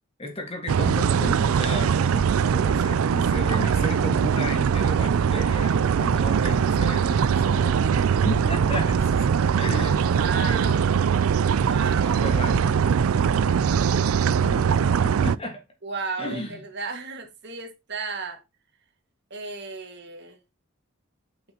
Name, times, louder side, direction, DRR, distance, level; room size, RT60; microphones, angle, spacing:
voice 1, 0.2-9.3 9.6-10.7 12.0-12.8 14.3-14.6 15.0-15.6 16.2-16.6, left 1 dB, 25° left, 1.6 m, -34 dB
sound 1, 0.7-15.4, right 7 dB, 80° right, 0.4 m, -21 dB
voice 2, 10.1-11.0 11.5-12.2 15.8-18.4 19.3-20.4, right 4 dB, 55° right, 1.9 m, -34 dB
8.6 x 5.9 x 2.9 m
head